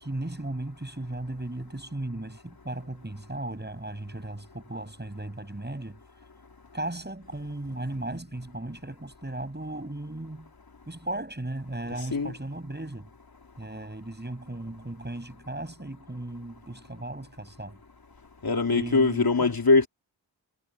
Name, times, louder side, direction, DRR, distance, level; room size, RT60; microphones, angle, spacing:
voice 1, 0.0-6.0 6.7-10.5 10.9-13.1 13.6-17.8 18.7-19.5, right 1 dB, 25° right, 7.2 m, -36 dB
voice 2, 18.4-19.9, left 3 dB, 55° left, 3.6 m, -22 dB
cardioid pair, 50°, 44 cm